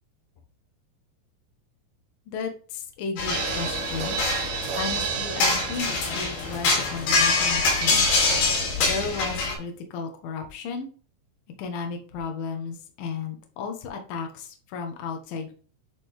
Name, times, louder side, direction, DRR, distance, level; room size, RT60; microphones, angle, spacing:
voice 1, 2.3-4.2 4.8-8.1 8.8-10.9 11.6-15.5, left 5 dB, 60° left, 4 dB, 2.8 m, -34 dB
sound 1, 3.2-9.6, left 4 dB, 90° left, 5.3 m, -25 dB
sound 2, 3.3-8.4 8.6-8.7 9.0-9.1, right 6 dB, 60° right, 2.5 m, -32 dB
Hiss, 7.8-9.2, right 6 dB, 80° right, 1.5 m, -33 dB
11.0 x 4.1 x 3.6 m, 0.40 s
omnidirectional pair, 5.1 m